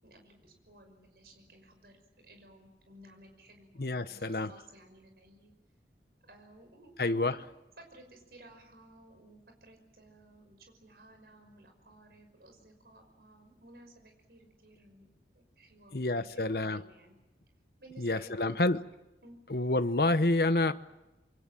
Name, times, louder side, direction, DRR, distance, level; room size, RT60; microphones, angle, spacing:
voice 1, 0.0-5.5 6.2-7.4 7.8-15.1 15.6-17.1 17.8-18.5 19.2-19.4, right 1 dB, 60° right, 6.0 m, -57 dB
voice 2, 3.8-4.5 7.0-7.3 15.9-16.8 18.0-18.8 19.5-20.7, left 2 dB, 60° left, 1.0 m, -28 dB
27.5 x 23.5 x 7.6 m
head